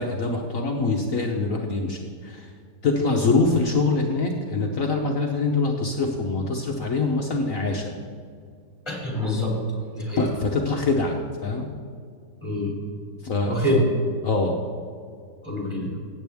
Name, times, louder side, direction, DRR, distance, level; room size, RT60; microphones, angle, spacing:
voice 1, 0.0-2.5 2.8-7.9 10.2-11.7 13.2-13.8 14.2-14.6, left 3 dB, 55° left, 1 dB, 1.0 m, -24 dB
voice 2, 8.9-9.6 9.9-10.2 12.4-12.7 13.4-13.8 15.4-15.9, left 1 dB, 15° left, -3 dB, 2.8 m, -25 dB
16.0 x 8.8 x 3.5 m, 2.2 s
omnidirectional pair, 2.2 m